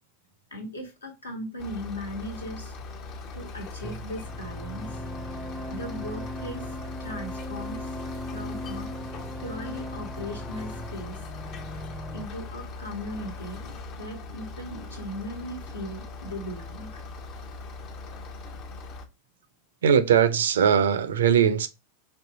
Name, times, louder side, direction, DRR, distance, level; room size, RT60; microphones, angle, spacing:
voice 1, 0.5-2.8 3.3-5.0 5.7-6.7 7.0-7.9 8.3-9.0 9.4-11.2 12.1-17.0, equal, 75° left, 1.2 m, -38 dB
sound 1, 1.6-19.0, left 3 dB, 35° left, 0.6 m, -40 dB
sound 2, 3.8-12.3, equal, 5° right, 0.5 m, -39 dB
voice 2, 19.8-21.7, right 8 dB, 65° right, 0.4 m, -20 dB
4.4 x 2.9 x 2.6 m
figure-of-eight pair, 90°, 0 cm